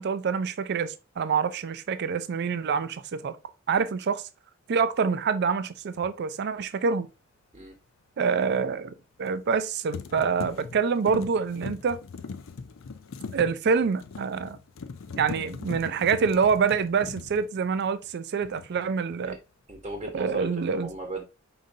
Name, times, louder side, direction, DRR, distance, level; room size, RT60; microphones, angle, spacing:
voice 1, 0.0-3.4 3.7-4.2 4.7-7.1 8.2-12.0 13.3-14.6 15.2-19.4 20.1-20.9, right 5 dB, 55° right, 0.4 m, -26 dB
sound 1, 5.9-6.1 9.3-9.6 9.9-18.1 18.4-18.9, left 4 dB, 70° left, 0.5 m, -40 dB
voice 2, 19.7-21.2, right 2 dB, 25° right, 0.9 m, -37 dB
5.3 x 3.8 x 2.6 m
head